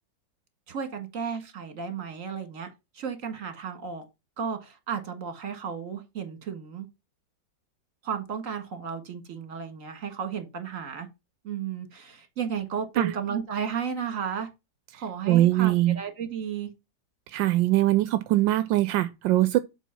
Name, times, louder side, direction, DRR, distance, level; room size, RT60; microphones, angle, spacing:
voice 1, 0.7-2.7 2.9-4.1 4.4-6.9 8.0-11.1 11.4-14.5 14.9-16.7, right 7 dB, 45° right, 1.9 m, -33 dB
voice 2, 15.3-16.0 17.3-19.6, right 15 dB, 85° right, 1.3 m, -22 dB
7.4 x 4.2 x 5.5 m
omnidirectional pair, 2.0 m